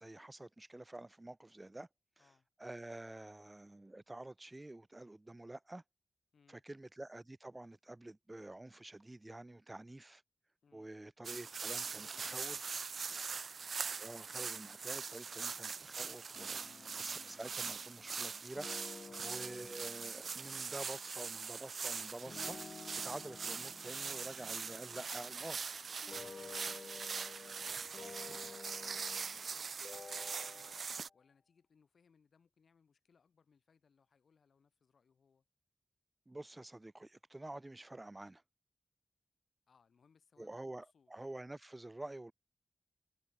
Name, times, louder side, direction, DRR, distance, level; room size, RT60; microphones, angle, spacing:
voice 1, 0.0-1.9 2.6-5.8 6.5-10.2 10.7-12.8 14.0-16.6 16.9-18.7 19.2-22.6 23.0-25.6 36.3-38.4 40.4-42.3, right 2 dB, 20° right, 0.5 m, -48 dB
voice 2, 2.2-2.5 6.3-6.6 10.6-10.9 11.9-12.8 13.1-13.5 19.0-19.3 26.5-30.8 31.1-35.4 39.7-41.1, left 6 dB, 80° left, 7.5 m, -71 dB
sound 1, 11.2-31.1, right 5 dB, 70° right, 0.6 m, -42 dB
sound 2, 16.3-18.2 18.5-21.0 22.2-25.6 26.0-29.5 29.8-31.1, left 4 dB, 55° left, 2.1 m, -53 dB
wide cardioid pair, 140°, 0 cm